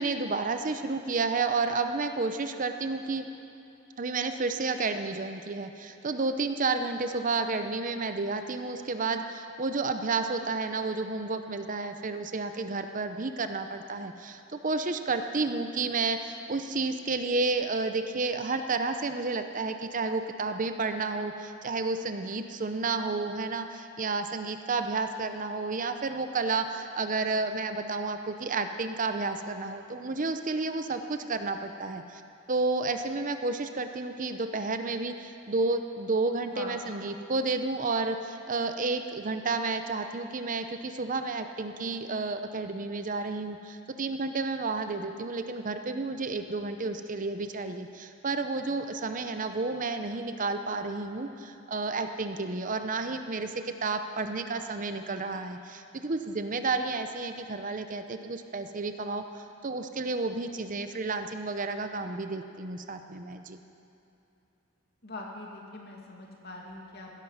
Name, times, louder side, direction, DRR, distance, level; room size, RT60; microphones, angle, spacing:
voice 1, 0.0-3.3 4.0-32.2 32.5-63.6, right 3 dB, 40° right, 8 dB, 0.7 m, -31 dB
voice 2, 36.4-37.0 65.0-67.1, left 2 dB, 55° left, -1 dB, 2.4 m, -42 dB
16.0 x 13.5 x 5.7 m, 2.7 s
head